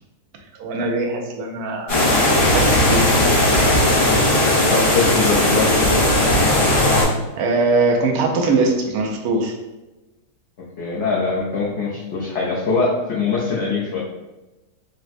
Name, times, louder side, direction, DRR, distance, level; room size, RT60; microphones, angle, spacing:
voice 1, 0.6-2.0 2.5-3.2 7.3-9.6, right 3 dB, 75° right, 2 dB, 1.0 m, -21 dB
sound 1, 1.9-7.0, left 1 dB, 80° left, 1.9 m, -17 dB
voice 2, 4.7-5.9 10.8-14.0, left 4 dB, 60° left, -7 dB, 0.7 m, -22 dB
4.1 x 2.0 x 2.5 m, 1.1 s
omnidirectional pair, 1.8 m